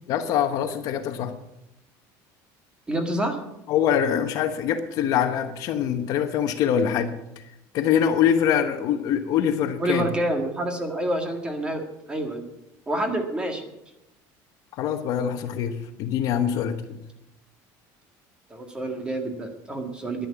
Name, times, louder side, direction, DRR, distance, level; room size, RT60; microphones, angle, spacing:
voice 1, 0.1-1.3 3.7-7.4 7.7-10.1 14.7-17.0, left 9 dB, 50° left, 8 dB, 1.1 m, -24 dB
voice 2, 2.9-3.4 9.8-12.5 12.9-13.6 18.5-20.3, right 1 dB, 10° right, 4 dB, 1.8 m, -28 dB
11.0 x 10.5 x 8.6 m, 0.88 s
cardioid pair, 180°, 8 cm